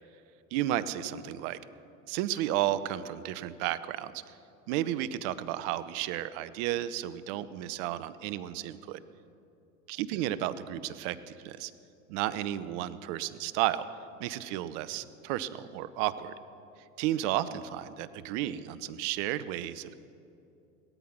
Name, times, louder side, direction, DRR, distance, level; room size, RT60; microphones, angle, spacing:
voice 1, 0.5-1.6 2.1-4.3 4.7-9.0 9.9-11.7 12.1-13.9 14.2-16.3 17.0-19.9, right 13 dB, 60° right, 15 dB, 0.9 m, -33 dB
17.5 x 13.0 x 5.9 m, 2.7 s
hypercardioid pair, 90°, 40 cm